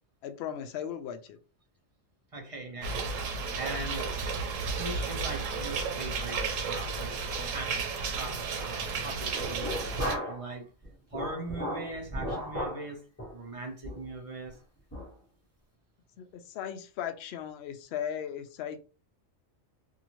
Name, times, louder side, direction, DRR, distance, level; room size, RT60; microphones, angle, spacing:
voice 1, 0.2-1.4 16.2-18.8, left 9 dB, 65° left, 0.7 m, -37 dB
voice 2, 2.3-4.2 4.8-7.2 7.5-7.8 8.1-10.7 11.1-14.6, right 2 dB, 30° right, 0.8 m, -41 dB
sound 1, 2.8-10.2, right 4 dB, 85° right, 1.1 m, -33 dB
sound 2, 9.3-10.5 10.8-12.8 13.2-13.4 13.8-14.1 14.5-14.6 14.9-15.1, equal, 10° left, 1.0 m, -35 dB
2.8 x 2.5 x 2.9 m
omnidirectional pair, 1.3 m